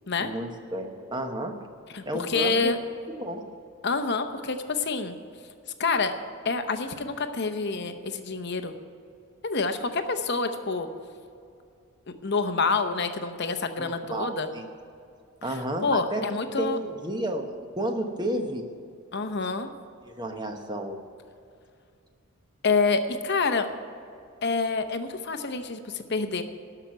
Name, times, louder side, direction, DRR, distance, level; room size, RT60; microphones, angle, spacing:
voice 1, 0.2-1.6 2.1-2.7 3.1-3.4 13.8-14.7 15.4-16.2 16.6-17.5 17.8-18.6 20.1-21.0, right 1 dB, 20° right, 5 dB, 0.9 m, -31 dB
voice 2, 1.9-2.8 3.8-5.1 5.8-6.2 6.4-8.7 9.4-10.9 12.2-14.5 15.5-15.6 15.8-16.8 19.1-19.7 22.6-23.7 24.4-26.4, left 4 dB, 50° left, 8 dB, 0.8 m, -27 dB
12.5 x 5.9 x 9.3 m, 2.4 s
head